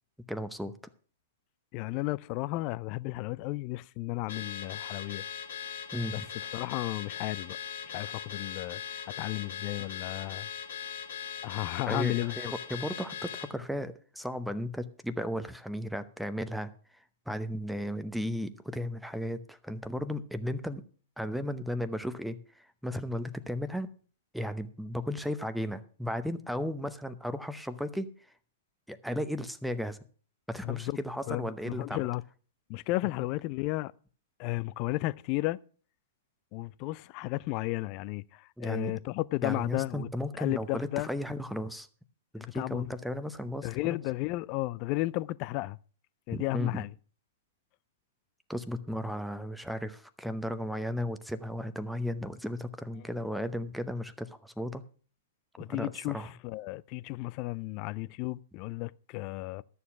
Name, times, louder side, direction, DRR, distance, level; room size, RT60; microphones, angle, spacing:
voice 1, 0.3-0.7 5.9-6.3 11.9-16.7 17.3-20.8 21.2-23.9 24.3-28.1 28.9-30.0 30.5-32.0 38.6-39.0 39.4-41.9 42.3-44.0 46.3-46.8 48.5-54.8 55.7-56.3, equal, ahead, 0.8 m, -35 dB
voice 2, 1.7-5.2 6.1-7.6 7.9-8.8 9.2-10.5 11.4-12.3 30.6-31.0 31.3-32.2 32.7-33.9 34.4-35.6 36.5-40.1 40.4-41.1 42.4-42.8 43.6-45.8 46.3-46.9 55.6-59.6, left 19 dB, 40° left, 0.4 m, -33 dB
Car / Alarm, 4.3-13.5, left 8 dB, 60° left, 1.1 m, -40 dB
12.5 x 7.0 x 6.0 m
figure-of-eight pair, 105°, 0 cm